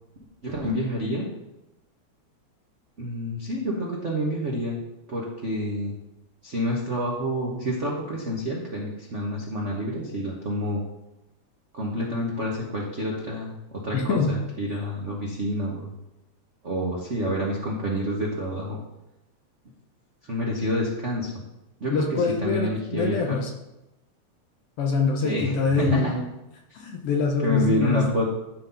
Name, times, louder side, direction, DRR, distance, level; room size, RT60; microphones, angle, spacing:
voice 1, 0.4-1.3 3.0-4.8 5.1-5.9 6.4-10.8 11.7-15.9 16.6-18.8 20.3-21.3 21.8-23.4 25.2-26.1 27.4-28.3, equal, 70° right, -3 dB, 0.6 m, -28 dB
voice 2, 13.9-14.4 15.0-15.1 21.9-23.5 24.8-26.3 26.7-28.1, left 4 dB, 65° left, 2 dB, 1.6 m, -24 dB
11.5 x 3.9 x 5.7 m, 0.96 s
omnidirectional pair, 3.3 m